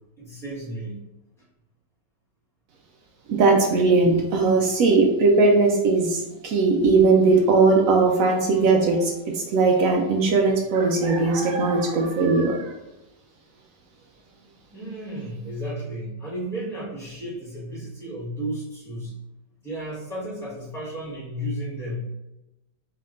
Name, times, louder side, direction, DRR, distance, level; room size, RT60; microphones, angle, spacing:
voice 1, 0.2-1.0 14.7-19.1 19.6-22.0, right 1 dB, ahead, -7 dB, 1.1 m, -33 dB
voice 2, 3.3-12.7, right 3 dB, 75° right, 1 dB, 0.8 m, -19 dB
3.3 x 2.8 x 3.7 m, 0.95 s
omnidirectional pair, 1.9 m